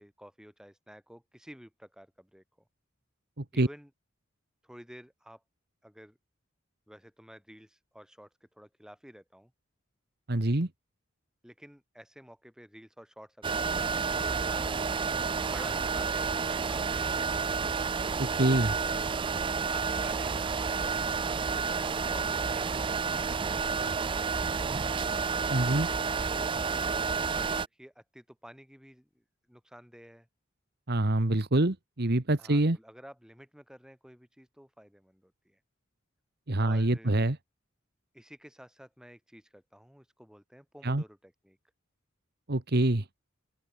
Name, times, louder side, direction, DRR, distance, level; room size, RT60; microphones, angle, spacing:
voice 1, 0.0-2.7 3.5-3.9 4.6-5.4 5.8-6.2 6.9-8.3 8.5-9.5 11.4-14.7 15.4-17.4 26.3-29.2 29.5-30.3 32.4-35.6 36.6-37.2 38.1-41.6, equal, 5° right, 7.9 m, -51 dB
voice 2, 3.4-3.7 10.3-10.7 18.2-18.8 25.5-25.9 30.9-32.8 36.5-37.4 40.8-41.0 42.5-43.0, right 1 dB, 55° right, 1.5 m, -26 dB
sound 1, 13.4-27.7, right 5 dB, 25° right, 0.4 m, -30 dB
open air
head